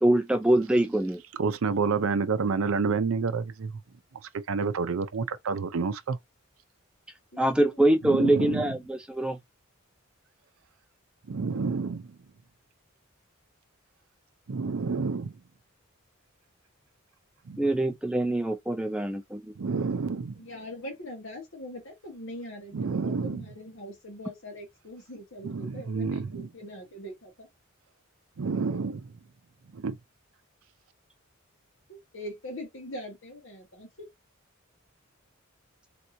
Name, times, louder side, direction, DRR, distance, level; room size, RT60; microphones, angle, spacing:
voice 1, 0.0-1.2 7.4-9.4 17.6-19.4, right 1 dB, 5° right, 0.3 m, -24 dB
voice 2, 1.4-3.7 4.5-6.2 8.0-8.7 11.3-12.1 14.5-15.3 17.5-17.7 19.6-20.3 22.7-23.4 25.4-26.5 28.4-29.0 29.7-30.0, right 5 dB, 75° right, 0.5 m, -29 dB
voice 3, 20.3-27.5 31.9-34.1, left 1 dB, 65° left, 1.7 m, -42 dB
3.3 x 2.9 x 2.6 m
head